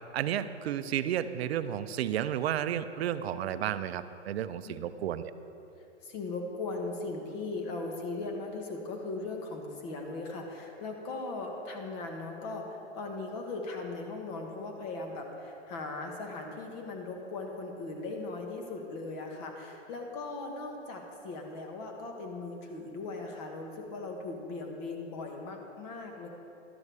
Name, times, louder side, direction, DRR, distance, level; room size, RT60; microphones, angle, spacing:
voice 1, 0.1-5.3, right 10 dB, 60° right, 12 dB, 0.5 m, -32 dB
voice 2, 5.8-26.3, left 3 dB, 35° left, 2 dB, 1.5 m, -38 dB
12.0 x 10.5 x 3.5 m, 2.9 s
hypercardioid pair, 145°, 36 cm